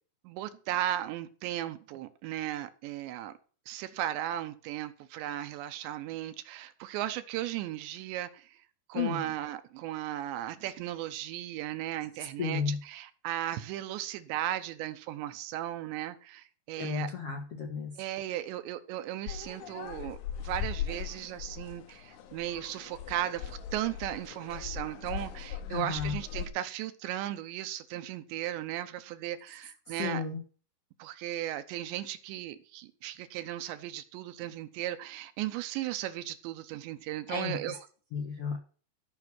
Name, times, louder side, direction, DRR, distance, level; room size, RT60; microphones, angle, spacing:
voice 1, 0.2-3.3 3.7-8.6 8.9-17.1 18.0-30.2 31.0-37.8, right 13 dB, 80° right, 3.0 m, -36 dB
voice 2, 12.4-12.8 16.8-17.9 25.7-26.2 29.9-30.4 37.3-37.8 38.1-38.6, left 6 dB, 70° left, 1.4 m, -33 dB
sound 1, 19.3-26.5, left 8 dB, 90° left, 3.9 m, -39 dB
14.0 x 5.9 x 6.1 m
omnidirectional pair, 5.3 m